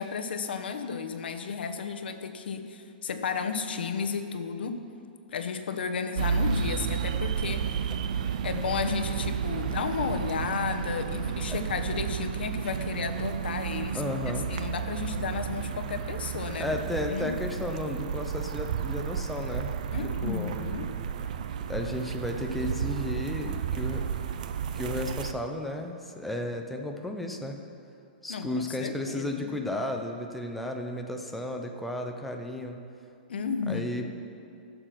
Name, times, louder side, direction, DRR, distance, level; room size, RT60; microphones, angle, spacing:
voice 1, 0.0-4.8 5.3-7.9 8.4-14.0 14.5-16.8 17.1-17.4 19.9-20.9 28.3-29.6 33.3-34.1, left 6 dB, 85° left, 7 dB, 1.0 m, -33 dB
sound 1, 6.1-25.3, right 7 dB, 50° right, 0.5 m, -32 dB
voice 2, 13.9-14.5 16.5-19.7 20.0-20.6 21.6-24.2 24.7-27.6 28.2-32.8 33.7-34.1, left 1 dB, ahead, 2 dB, 0.5 m, -33 dB
14.5 x 6.9 x 5.9 m, 2.5 s
hypercardioid pair, 175°, 5 cm